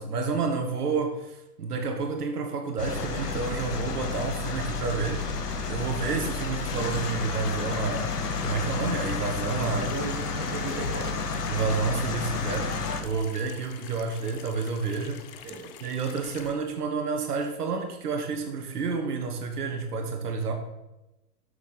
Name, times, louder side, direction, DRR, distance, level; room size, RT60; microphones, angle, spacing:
voice 1, 0.0-5.3 5.7-9.8 11.5-15.2 15.8-20.5, right 4 dB, 85° right, 4 dB, 1.3 m, -30 dB
sound 1, 2.8-13.0, left 4 dB, 90° left, 1.3 m, -31 dB
Water tap faucet / Sink (filling or washing), 5.9-16.6, left 10 dB, 45° left, 0.9 m, -47 dB
voice 2, 9.6-11.2 15.4-15.8, right 3 dB, 35° right, 2 dB, 1.9 m, -37 dB
6.7 x 6.4 x 5.6 m, 0.99 s
hypercardioid pair, 110°, 45 cm